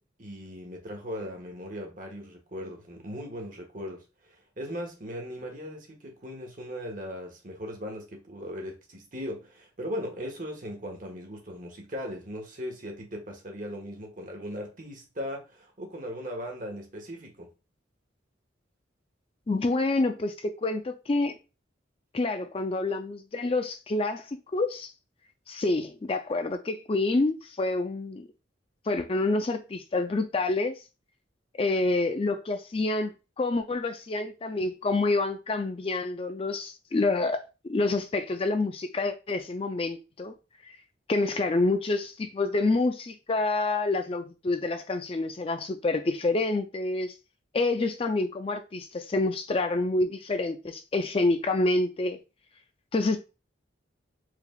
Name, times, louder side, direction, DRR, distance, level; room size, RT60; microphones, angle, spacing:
voice 1, 0.2-4.0 4.3-17.5, equal, 45° right, 1.3 m, -38 dB
voice 2, 19.5-21.4 22.1-24.9 25.5-28.3 28.9-30.7 31.6-37.4 37.7-40.3 40.6-40.7 41.1-47.1 47.5-52.2 52.9-53.2, left 2 dB, 30° left, 0.4 m, -27 dB
4.7 x 3.5 x 2.3 m
head